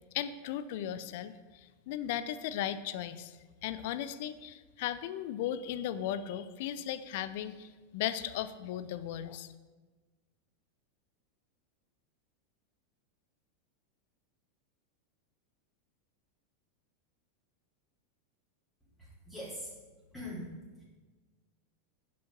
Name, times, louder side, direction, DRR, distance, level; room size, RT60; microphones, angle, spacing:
voice 1, 0.1-9.5, left 11 dB, 60° left, 13 dB, 0.5 m, -37 dB
voice 2, 19.3-19.7 20.1-20.8, left 1 dB, 5° left, -9 dB, 3.1 m, -42 dB
10.0 x 5.5 x 5.3 m, 1.3 s
figure-of-eight pair, 90°, 0 cm